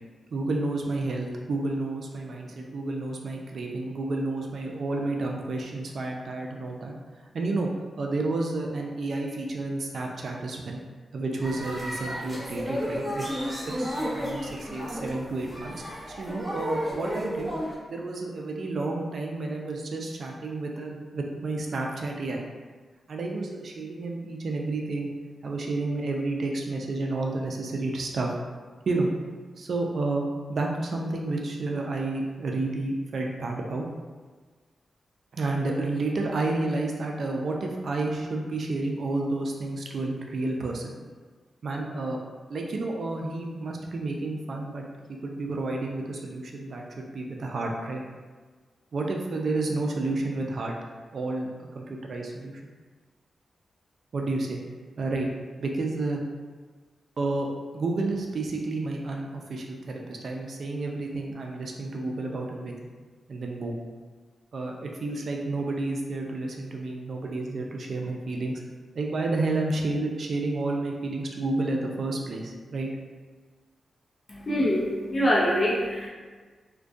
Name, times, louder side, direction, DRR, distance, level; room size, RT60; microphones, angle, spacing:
voice 1, 0.3-6.9 7.3-7.7 8.0-10.8 11.1-13.3 13.8-15.7 16.2-17.5 17.9-22.4 23.1-25.1 25.4-28.3 28.9-29.1 29.6-33.9 35.3-40.9 41.6-42.2 42.5-44.8 45.1-48.0 48.9-50.7 51.1-51.5 51.7-52.6 54.1-54.6 55.0-55.3 55.6-56.2 57.2-57.5 57.7-62.7 63.3-63.8 64.5-68.6 69.0-72.9, right 2 dB, 65° right, 0 dB, 0.4 m, -30 dB
sound 1, 11.4-17.7, equal, 5° left, 0.8 m, -33 dB
voice 2, 74.3-76.1, equal, 35° left, -5 dB, 0.5 m, -24 dB
2.2 x 2.2 x 2.5 m, 1.4 s
cardioid pair, 60°, 0 cm